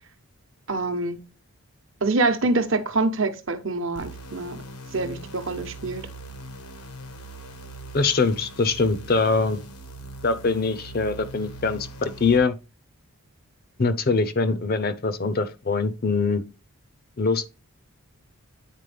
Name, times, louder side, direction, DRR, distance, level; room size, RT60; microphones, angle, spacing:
voice 1, 0.7-1.2 2.0-4.6 4.9-6.1, right 3 dB, 60° right, 0.9 m, -25 dB
sound 1, 3.9-12.4, right 1 dB, 85° left, 1.2 m, -41 dB
voice 2, 7.9-9.6 10.2-12.5 13.8-16.4 17.2-17.5, left 4 dB, 40° left, 0.6 m, -23 dB
9.2 x 4.3 x 3.3 m
head